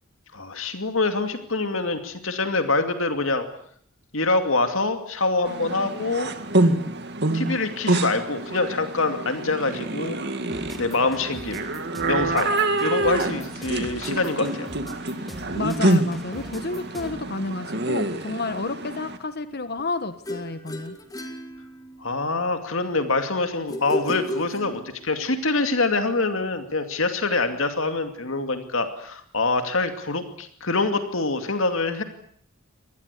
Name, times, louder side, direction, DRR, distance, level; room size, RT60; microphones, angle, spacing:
voice 1, 0.3-3.5 4.1-6.3 7.3-10.2 10.8-11.6 12.0-12.5 12.8-14.7 22.0-32.0, left 3 dB, 65° left, 7 dB, 2.5 m, -25 dB
sound 1, 5.4-19.2, right 2 dB, 50° right, 2.3 m, -26 dB
sound 2, 10.5-17.4, equal, ahead, 2.8 m, -42 dB
voice 2, 15.5-21.0, left 3 dB, 45° left, 11 dB, 1.3 m, -30 dB
sound 3, 20.3-22.2 23.7-25.2, equal, 15° left, 2.4 m, -33 dB
25.5 x 19.5 x 8.4 m, 0.63 s
head